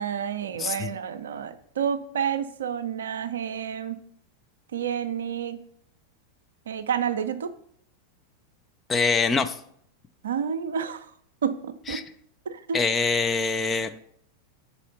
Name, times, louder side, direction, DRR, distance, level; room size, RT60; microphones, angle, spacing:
voice 1, 0.0-4.0 4.7-5.6 6.7-7.5 10.2-11.1 11.4-12.0 12.5-12.8, right 7 dB, 65° right, 11 dB, 0.4 m, -29 dB
voice 2, 0.6-0.9 8.9-9.6 11.9-12.0 12.7-13.9, left 4 dB, 20° left, 9 dB, 0.4 m, -24 dB
4.9 x 4.1 x 5.5 m, 0.65 s
figure-of-eight pair, 90°, 0 cm